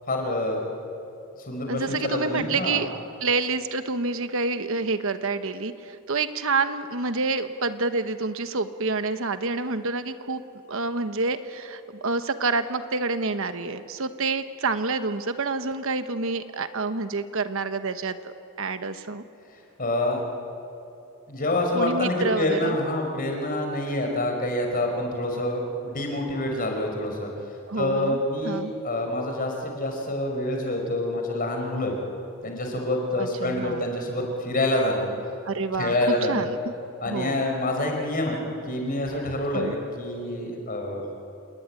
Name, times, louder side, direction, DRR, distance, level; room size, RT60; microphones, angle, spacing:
voice 1, 0.1-0.6 1.4-2.8 19.8-20.2 21.3-27.3 27.8-32.0 32.4-35.1 35.8-36.5 37.0-41.0, left 1 dB, 40° left, 2 dB, 5.1 m, -27 dB
voice 2, 1.7-2.9 3.2-10.4 10.7-19.2 21.7-22.8 27.7-28.2 28.4-28.7 33.2-33.9 35.4-36.6 37.0-37.4 39.5-39.7, right 3 dB, 65° right, 9 dB, 1.2 m, -28 dB
28.5 x 20.0 x 9.9 m, 2.7 s
head